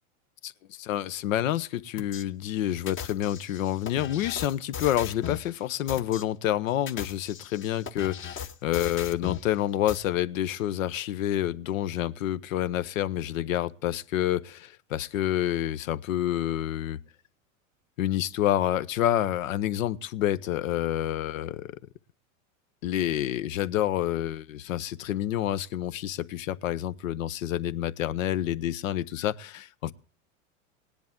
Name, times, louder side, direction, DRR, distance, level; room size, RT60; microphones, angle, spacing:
voice 1, 0.4-17.0 18.0-21.8 22.8-29.9, left 12 dB, 75° left, 0.9 m, -28 dB
sound 1, 2.0-2.2 2.9-5.5 5.9-6.2 6.7-9.5 9.9-10.0, left 8 dB, 30° left, 1.0 m, -37 dB
18.5 x 10.5 x 3.6 m
hypercardioid pair, 105°, 41 cm